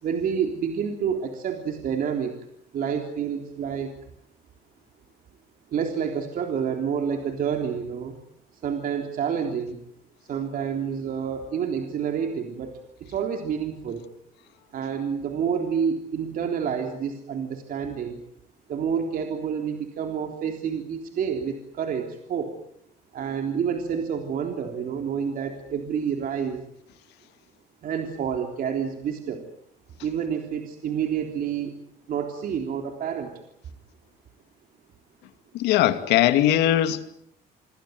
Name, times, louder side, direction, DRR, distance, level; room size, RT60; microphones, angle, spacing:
voice 1, 0.0-2.4 2.7-4.0 5.7-8.1 8.5-9.8 10.3-12.7 13.0-14.1 14.7-18.2 18.7-22.5 23.1-26.6 27.8-29.4 30.0-31.7 32.1-33.3, right 7 dB, 55° right, 3.5 m, -28 dB
voice 2, 35.5-37.1, left 12 dB, 85° left, 2.5 m, -20 dB
27.5 x 22.5 x 7.9 m
cardioid pair, 110°, 17 cm